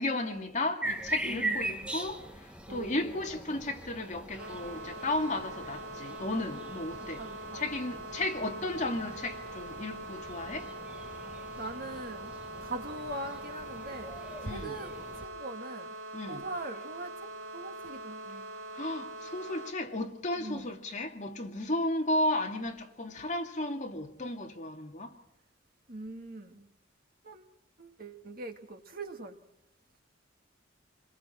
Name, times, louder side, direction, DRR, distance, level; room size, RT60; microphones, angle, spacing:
voice 1, 0.0-7.2 7.5-10.7 14.4-14.7 16.1-16.4 18.7-25.1, left 1 dB, 40° left, 2.4 m, -34 dB
sound 1, 0.8-15.3, right 2 dB, 5° right, 1.4 m, -41 dB
voice 2, 1.2-1.9 2.7-3.3 7.0-7.7 11.6-12.3 12.6-14.1 14.4-15.9 16.3-18.5 20.4-20.8 25.9-26.7 27.2-27.5 27.8-29.4, right 2 dB, 45° right, 2.2 m, -42 dB
sound 2, 4.4-19.7, right 2 dB, 85° right, 1.6 m, -43 dB
28.0 x 22.0 x 4.5 m
head